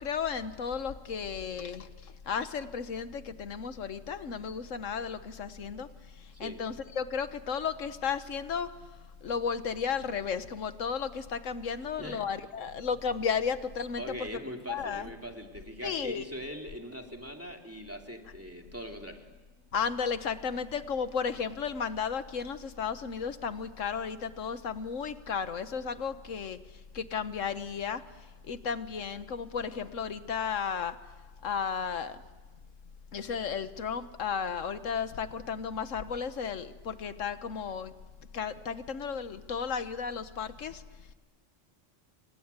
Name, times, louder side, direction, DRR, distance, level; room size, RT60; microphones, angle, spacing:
voice 1, 0.0-5.9 6.4-8.7 9.2-14.0 14.7-15.0 15.8-16.2 19.7-26.6 26.9-28.0 28.4-31.0 31.4-32.2 33.1-37.9 38.3-40.8, left 6 dB, 85° left, 11 dB, 1.5 m, -34 dB
voice 2, 11.8-12.5 14.0-19.2, equal, 10° right, 3 dB, 2.6 m, -41 dB
28.0 x 25.0 x 8.2 m, 1.2 s
omnidirectional pair, 1.3 m